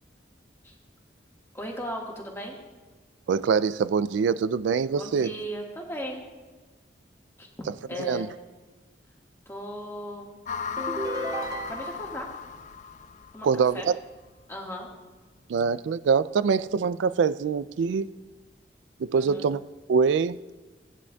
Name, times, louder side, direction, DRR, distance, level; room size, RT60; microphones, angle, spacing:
voice 1, 1.5-2.6 4.9-6.2 7.4-7.5 7.9-8.3 9.4-10.3 11.7-12.3 13.3-13.5 13.7-13.9 14.5-14.9 19.1-19.5, equal, 15° left, 1.6 m, -36 dB
voice 2, 3.3-5.4 8.0-8.3 13.4-14.0 15.5-18.1 19.0-19.6 19.9-20.4, right 5 dB, 90° right, 0.3 m, -24 dB
sound 1, 10.4-13.7, left 6 dB, 40° left, 0.3 m, -36 dB
sound 2, 10.8-12.2, right 1 dB, 20° right, 0.5 m, -33 dB
18.0 x 9.6 x 2.3 m
head